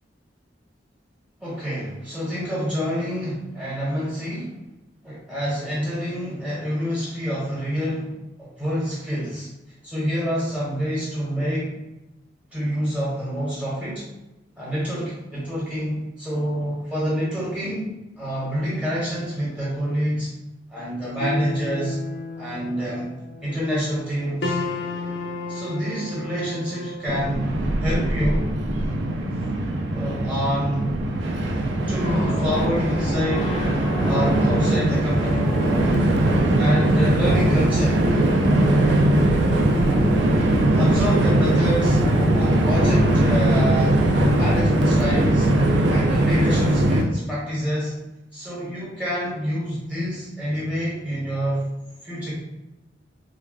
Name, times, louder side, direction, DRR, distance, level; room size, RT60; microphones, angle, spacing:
voice 1, 1.4-4.5 5.0-8.1 8.4-9.5 9.8-11.7 12.5-14.1 14.6-20.3 20.7-22.0 22.4-23.1 23.4-24.6 25.5-27.4 27.8-28.5 29.4-29.5 29.9-30.9 31.9-33.5 34.0-35.5 36.5-38.0 40.7-42.0 42.3-44.0 44.4-45.5 45.9-48.0 48.3-51.6 52.0-52.4, equal, 5° right, -8 dB, 1.1 m, -27 dB
sound 1, 21.2-27.4, left 2 dB, 70° left, 0.6 m, -33 dB
Train, 27.1-47.0, right 1 dB, 75° right, 0.5 m, -20 dB
sound 2, 32.0-44.6, left 1 dB, 30° left, 0.4 m, -32 dB
4.8 x 2.2 x 2.4 m, 0.96 s
head